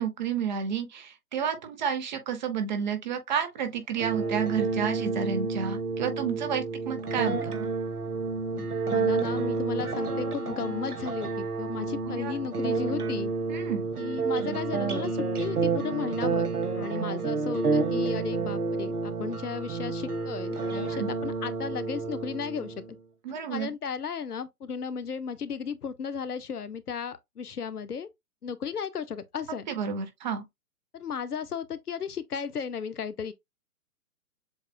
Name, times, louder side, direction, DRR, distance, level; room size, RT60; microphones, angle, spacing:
voice 1, 0.0-7.5 12.1-12.3 13.5-13.9 16.9-17.1 20.9-21.1 23.2-23.7 29.7-30.4, right 7 dB, 30° right, 0.9 m, -31 dB
sound 1, 4.0-23.0, right 4 dB, 80° right, 1.2 m, -30 dB
voice 2, 8.5-13.3 13.9-16.5 16.7-22.8 23.5-28.1 28.4-29.7 30.9-33.3, left 6 dB, 80° left, 0.8 m, -35 dB
7.2 x 2.5 x 2.3 m
figure-of-eight pair, 130°, 45 cm